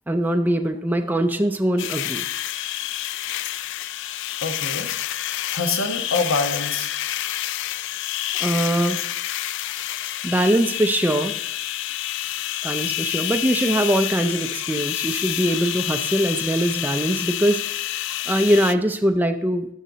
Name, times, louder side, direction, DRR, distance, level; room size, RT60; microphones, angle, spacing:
voice 1, 0.1-2.2 8.4-9.0 10.2-11.4 12.6-19.7, right 1 dB, 10° right, 6 dB, 0.4 m, -22 dB
sound 1, 1.8-18.7, left 13 dB, 60° left, 0.3 m, -28 dB
voice 2, 4.4-6.9, left 3 dB, 80° left, 6 dB, 1.2 m, -26 dB
13.0 x 6.5 x 4.0 m, 0.78 s
head